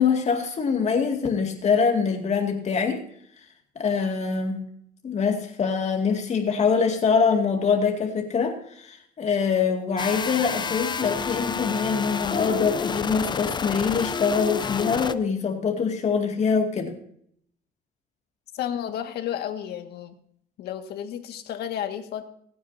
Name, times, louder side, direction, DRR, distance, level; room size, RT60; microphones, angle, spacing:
voice 1, 0.0-3.0 3.8-4.6 5.0-16.9, left 5 dB, 40° left, 3 dB, 2.2 m, -24 dB
sound 1, 10.0-15.1, left 5 dB, 25° left, 0.7 m, -29 dB
voice 2, 18.5-20.1 20.6-22.2, left 10 dB, 75° left, 7 dB, 1.8 m, -32 dB
27.5 x 9.4 x 2.7 m, 0.67 s
cardioid pair, 110°, 17 cm